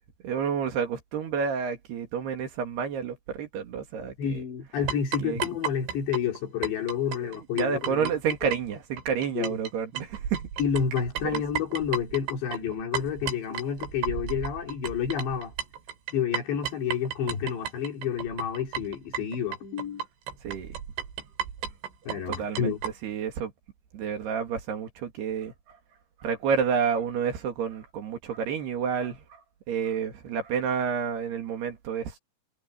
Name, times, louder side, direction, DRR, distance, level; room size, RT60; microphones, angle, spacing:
voice 1, 0.2-4.4 5.2-5.4 7.2-10.4 11.3-11.4 20.4-20.8 22.3-22.7 23.0-23.5 23.9-25.8 26.2-29.4 29.7-32.2, right 6 dB, 65° right, 4.1 m, -30 dB
voice 2, 4.2-8.1 9.4-9.6 10.6-15.5 16.1-20.0 22.1-22.8, left 8 dB, 70° left, 5.4 m, -29 dB
sound 1, 4.9-9.7 10.0-22.9, right 8 dB, 85° right, 6.2 m, -34 dB
omnidirectional pair, 5.4 m